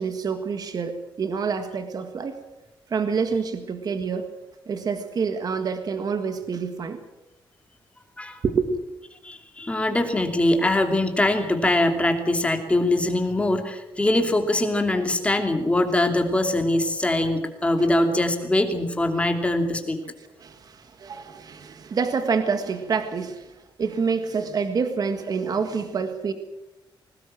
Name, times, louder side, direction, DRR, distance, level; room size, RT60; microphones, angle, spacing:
voice 1, 0.0-2.4 2.9-4.3 4.7-7.0 8.4-8.8 17.2-17.3 20.4-26.3, right 5 dB, 45° right, 8 dB, 1.7 m, -27 dB
voice 2, 9.2-20.0, left 1 dB, 15° left, 5 dB, 2.9 m, -22 dB
21.5 x 19.0 x 7.6 m, 0.98 s
wide cardioid pair, 145°, 9 cm